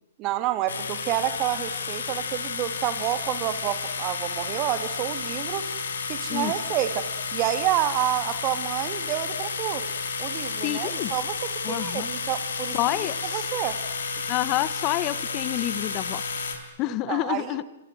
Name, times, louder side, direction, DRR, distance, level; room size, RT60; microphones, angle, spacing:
voice 1, 0.2-5.7 6.1-9.8 10.2-11.4 11.7-12.8 13.3-13.8 16.9-17.6, right 13 dB, 35° right, 11 dB, 2.3 m, -29 dB
electro toothbrush without head away, 0.7-16.6, left 5 dB, 75° left, 4.8 m, -31 dB
voice 2, 10.6-11.1 11.6-12.1 12.7-13.5 14.3-16.2 16.8-17.6, left 16 dB, 35° left, 17 dB, 1.1 m, -28 dB
28.5 x 25.5 x 7.9 m, 0.89 s
hypercardioid pair, 120°, 0 cm